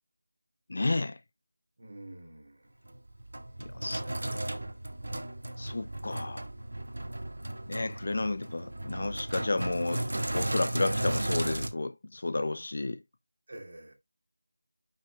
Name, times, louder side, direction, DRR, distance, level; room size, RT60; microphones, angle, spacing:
voice 1, 0.7-1.2 3.6-4.0 5.6-6.5 7.7-10.1 10.3-13.0, left 2 dB, 35° left, 0.5 m, -32 dB
voice 2, 1.8-2.8 4.0-4.7 7.7-7.9 13.5-13.9, right 1 dB, 40° right, 3.2 m, -49 dB
Sink (filling or washing), 2.9-11.7, right 1 dB, 70° right, 1.7 m, -35 dB
9.2 x 6.1 x 2.3 m
figure-of-eight pair, 175°, 0 cm